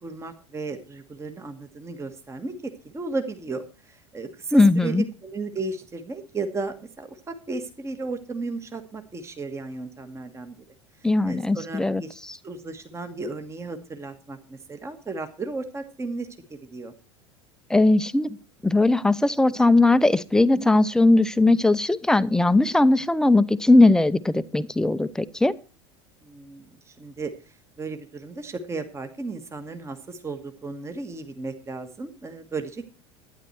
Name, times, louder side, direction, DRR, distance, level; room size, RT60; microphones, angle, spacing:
voice 1, 0.0-10.5 11.2-12.1 12.4-16.9 26.2-27.3 27.8-32.9, right 3 dB, 20° right, 8 dB, 1.5 m, -34 dB
voice 2, 4.5-5.0 11.0-12.4 17.7-18.4 18.6-25.5, left 2 dB, 5° left, 15 dB, 0.6 m, -19 dB
12.0 x 10.0 x 4.4 m, 0.35 s
figure-of-eight pair, 70°, 15 cm